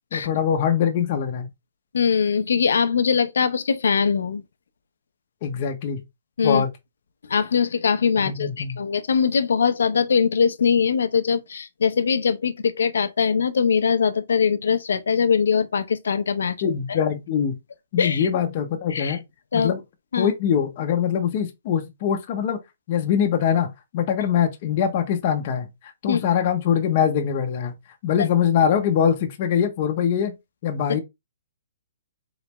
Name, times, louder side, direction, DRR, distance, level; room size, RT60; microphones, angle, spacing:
voice 1, 0.1-1.5 5.4-6.0 6.4-6.7 8.2-8.8 16.6-17.6 17.9-19.2 19.5-19.8 20.2-22.6 22.9-27.7 28.0-30.4 30.6-31.0, left 8 dB, 40° left, 0.7 m, -23 dB
voice 2, 1.9-4.4 6.4-6.6 7.3-17.0 18.0-18.3 18.9-19.2 19.5-19.7 20.1-20.3 26.1-26.2, left 6 dB, 85° left, 0.6 m, -22 dB
4.0 x 3.3 x 3.0 m
hypercardioid pair, 160°, 0 cm